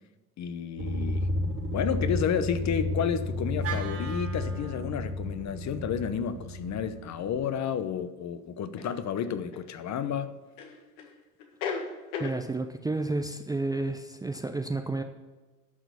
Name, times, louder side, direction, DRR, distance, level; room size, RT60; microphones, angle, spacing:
voice 1, 0.4-1.3 1.7-10.4, left 8 dB, 35° left, 11 dB, 0.9 m, -31 dB
sound 1, 0.8-7.5, left 1 dB, 85° right, 3.4 m, -32 dB
Wind instrument woodwind instrument, 3.6-7.9, right 8 dB, 30° right, 1.1 m, -43 dB
sound 2, 7.0-7.1 8.8-9.7 10.6-11.1 11.4-12.4, left 5 dB, 65° left, 1.7 m, -36 dB
voice 2, 12.2-15.0, right 2 dB, 10° right, 7 dB, 0.6 m, -31 dB
11.0 x 6.1 x 6.8 m, 1.2 s
hypercardioid pair, 70°, 46 cm